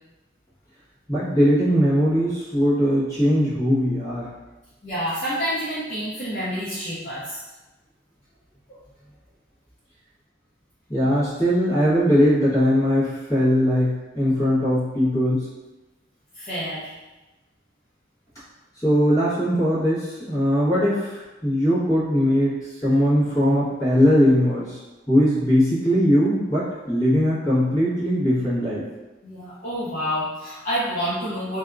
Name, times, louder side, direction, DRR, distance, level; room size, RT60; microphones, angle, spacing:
voice 1, 1.1-4.3 10.9-15.5 18.8-24.8 25.1-28.8, equal, 15° left, -12 dB, 1.2 m, -20 dB
voice 2, 4.8-7.4 16.3-16.9 29.2-31.6, equal, 40° left, -12 dB, 0.6 m, -28 dB
2.7 x 2.3 x 2.4 m, 1.1 s
head